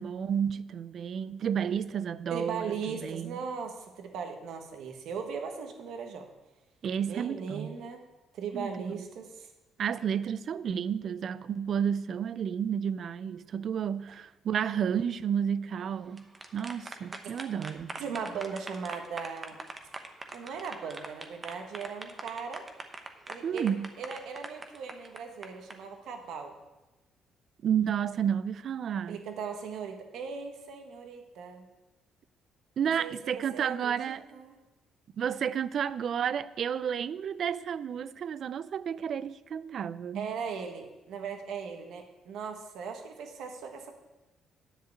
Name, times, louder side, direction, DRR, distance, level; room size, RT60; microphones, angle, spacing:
voice 1, 0.0-3.4 6.8-7.8 8.5-9.1 9.8-18.0 23.4-23.9 27.6-29.2 32.8-34.3 35.2-40.3, right 8 dB, 50° right, 0.4 m, -31 dB
voice 2, 2.3-6.3 7.1-8.0 8.3-9.5 18.0-19.6 20.3-22.6 23.3-26.5 29.1-31.6 33.0-34.6 40.1-43.9, right 6 dB, 75° right, 1.4 m, -38 dB
sound 1, 16.0-25.7, right 2 dB, 25° right, 0.9 m, -42 dB
10.0 x 4.9 x 8.0 m
cardioid pair, 120°, 0 cm